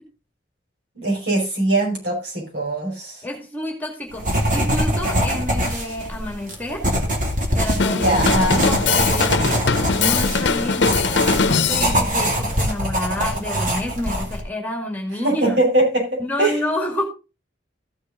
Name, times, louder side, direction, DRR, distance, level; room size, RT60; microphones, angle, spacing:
voice 1, 1.0-3.2 7.9-8.6 15.2-16.6, right 1 dB, 60° right, 5.5 m, -21 dB
voice 2, 3.2-6.9 7.5-8.2 8.5-9.6 9.9-15.6 16.2-17.0, left 1 dB, 10° left, 2.2 m, -29 dB
sound 1, 4.1-14.4, equal, 45° right, 2.5 m, -23 dB
Drum kit, 7.8-12.0, left 4 dB, 70° left, 0.8 m, -21 dB
14.5 x 6.5 x 3.8 m
head